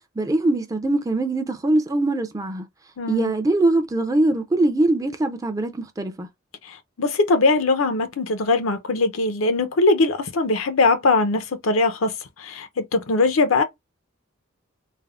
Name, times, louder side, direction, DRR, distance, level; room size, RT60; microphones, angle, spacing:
voice 1, 0.2-2.7 3.1-6.3, right 2 dB, 15° right, 0.4 m, -22 dB
voice 2, 3.0-3.3 7.0-12.1 12.4-13.6, left 3 dB, 80° left, 0.6 m, -21 dB
3.3 x 2.0 x 2.3 m
head